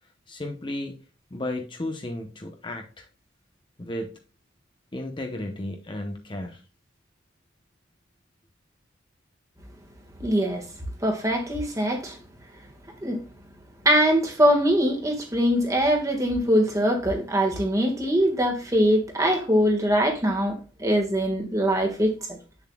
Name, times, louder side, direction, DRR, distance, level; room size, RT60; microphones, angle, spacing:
voice 1, 0.3-1.0 1.3-3.1 3.8-4.2 4.9-6.6, left 1 dB, 25° left, 0.8 m, -33 dB
voice 2, 10.2-10.6 11.0-12.2 13.0-13.2 13.8-22.4, equal, 15° right, 1.5 m, -22 dB
8.0 x 7.0 x 2.2 m
head